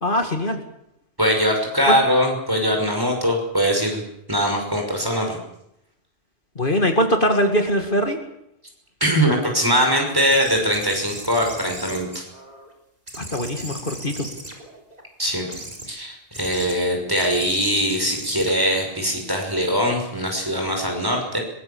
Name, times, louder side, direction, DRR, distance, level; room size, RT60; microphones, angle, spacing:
voice 1, 0.0-0.6 1.9-2.0 6.6-8.2 13.2-14.3, equal, 50° left, 5 dB, 2.4 m, -21 dB
voice 2, 1.2-4.0 4.3-5.4 9.0-12.2 15.2-15.5 15.9-21.4, equal, 20° right, 2 dB, 6.0 m, -21 dB
sound 1, 10.3-12.7 13.1-15.0 15.5-15.9 16.3-16.7 17.1-19.6, right 1 dB, 35° right, 4.3 m, -38 dB
23.0 x 21.0 x 7.2 m, 0.80 s
omnidirectional pair, 1.1 m